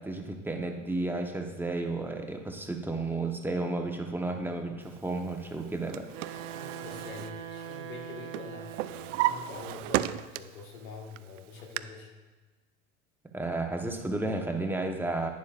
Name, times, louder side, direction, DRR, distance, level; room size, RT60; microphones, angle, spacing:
voice 1, 0.0-6.1 13.3-15.3, right 2 dB, 5° right, 3 dB, 1.1 m, -32 dB
Drawer open or close, 5.6-8.0 8.3-10.7 11.1-11.8, right 15 dB, 65° right, 0.5 m, -34 dB
Wind instrument woodwind instrument, 6.1-9.6, right 8 dB, 40° right, 1.2 m, -42 dB
voice 2, 6.5-12.1, left 4 dB, 85° left, 1 dB, 1.7 m, -45 dB
11.0 x 9.4 x 2.5 m, 1.3 s
hypercardioid pair, 90°, 40 cm